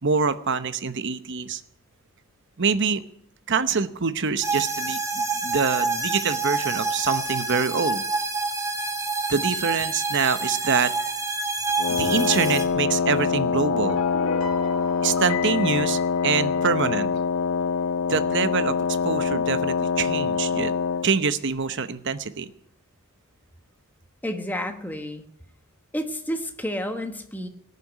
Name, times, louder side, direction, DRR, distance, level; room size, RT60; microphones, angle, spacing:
voice 1, 0.0-1.6 2.6-3.0 3.5-8.0 9.3-14.0 15.0-17.1 18.1-18.7 19.0-20.7 21.0-22.5, right 5 dB, 55° right, 12 dB, 0.9 m, -25 dB
sound 1, 4.4-12.6, right 3 dB, 15° right, 1.8 m, -27 dB
Wind instrument woodwind instrument, 11.8-21.1, left 5 dB, 65° left, 0.5 m, -25 dB
sound 2, 13.0-16.9, left 5 dB, 85° left, 1.9 m, -35 dB
voice 2, 24.2-25.2 25.9-27.5, equal, 10° left, 6 dB, 1.2 m, -30 dB
18.0 x 6.9 x 9.3 m, 0.70 s
head